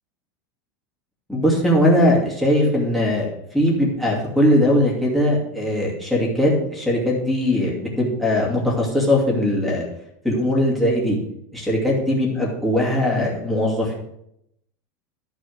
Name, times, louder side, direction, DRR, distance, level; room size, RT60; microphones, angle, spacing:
voice 1, 1.3-9.9 10.2-11.2 11.5-13.9, left 1 dB, ahead, -5 dB, 2.4 m, -20 dB
11.5 x 4.2 x 7.8 m, 0.76 s
supercardioid pair, 165°, 10 cm